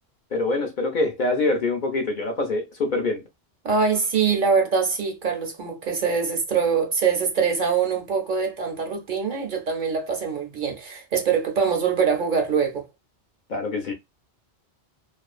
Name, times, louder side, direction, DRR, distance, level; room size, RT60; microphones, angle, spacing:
voice 1, 0.3-3.2 13.5-13.9, left 2 dB, 55° left, 0.6 m, -25 dB
voice 2, 3.6-12.9, right 6 dB, 55° right, 0.7 m, -23 dB
2.4 x 2.3 x 2.3 m
omnidirectional pair, 1.1 m